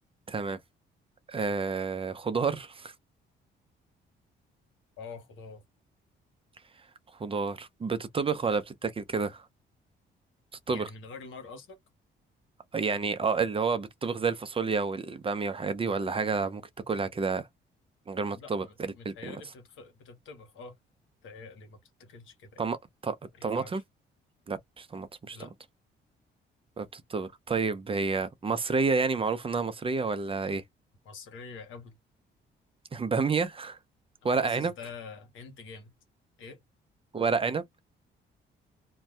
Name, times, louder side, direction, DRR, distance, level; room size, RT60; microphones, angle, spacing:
voice 1, 0.3-0.6 1.3-2.9 7.2-9.5 10.7-10.9 12.7-16.6 16.9-17.5 18.1-19.3 22.6-22.8 23.0-23.2 23.4-23.8 24.5-25.4 26.8-30.6 32.9-33.8 34.2-34.7 37.1-37.6, right 4 dB, 30° right, 0.5 m, -29 dB
voice 2, 5.0-5.6 10.7-11.8 18.3-20.8 21.2-22.6 23.3-23.8 25.3-25.5 31.0-32.0 34.3-35.9 36.4-36.6, left 4 dB, 85° left, 1.2 m, -46 dB
2.6 x 2.2 x 3.3 m
cardioid pair, 90°, 20 cm